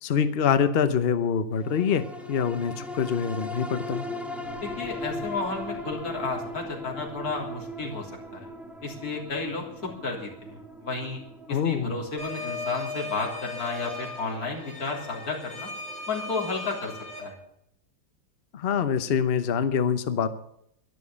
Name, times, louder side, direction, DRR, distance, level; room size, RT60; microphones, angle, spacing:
voice 1, 0.0-4.0 11.5-11.9 18.5-20.3, left 7 dB, 65° left, 11 dB, 0.5 m, -25 dB
sound 1, 1.6-16.3 16.7-16.8, left 1 dB, ahead, 0.9 m, -39 dB
voice 2, 4.6-8.5 8.8-10.5 10.8-11.2 11.5-15.7 16.1-16.9 17.2-17.4, left 3 dB, 45° left, -1 dB, 3.7 m, -32 dB
sound 2, 12.2-17.2, left 2 dB, 70° right, 8.0 m, -37 dB
12.0 x 11.5 x 8.7 m, 0.76 s
omnidirectional pair, 2.3 m